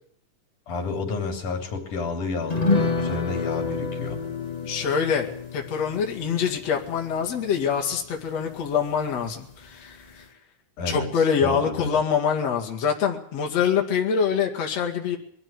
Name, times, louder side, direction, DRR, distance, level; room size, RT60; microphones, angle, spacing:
voice 1, 0.7-4.2 10.8-11.1 11.4-11.9, left 3 dB, 85° left, 5 dB, 4.9 m, -30 dB
sound 1, 2.5-9.3 9.6-9.7 10.0-10.2, left 3 dB, 45° left, 0.5 m, -30 dB
voice 2, 4.6-10.2 10.9-15.2, left 7 dB, 60° left, 1 dB, 3.5 m, -25 dB
22.5 x 13.5 x 8.5 m, 0.63 s
omnidirectional pair, 3.5 m